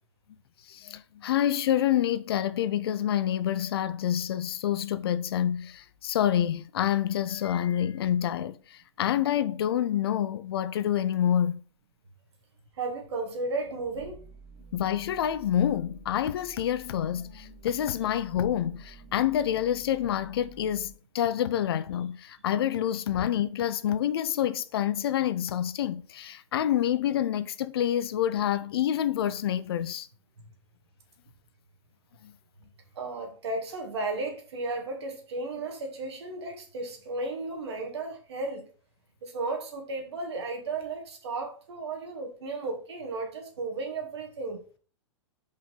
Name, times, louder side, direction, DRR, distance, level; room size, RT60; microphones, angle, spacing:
voice 1, 0.7-11.6 14.7-30.1 32.2-32.3, left 10 dB, 50° left, 0.4 m, -27 dB
voice 2, 12.8-14.2 30.4-30.5 33.0-38.7 39.2-44.6, right 3 dB, 60° right, 1.9 m, -34 dB
sound 1, 13.9-20.9, right 5 dB, 40° right, 1.9 m, -51 dB
5.2 x 4.3 x 4.8 m
figure-of-eight pair, 105°, 16 cm